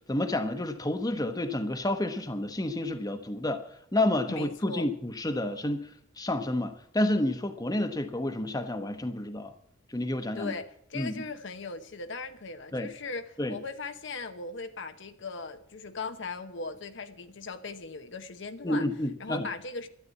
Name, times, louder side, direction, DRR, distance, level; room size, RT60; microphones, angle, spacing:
voice 1, 0.1-3.6 3.9-5.9 6.2-9.5 9.9-10.5 10.9-11.1 12.7-12.9 13.4-13.5 18.6-19.5, left 1 dB, 20° left, 1.0 m, -29 dB
voice 2, 4.3-4.9 10.3-18.9 19.2-19.9, left 3 dB, 65° left, 0.9 m, -38 dB
12.5 x 9.8 x 8.2 m
head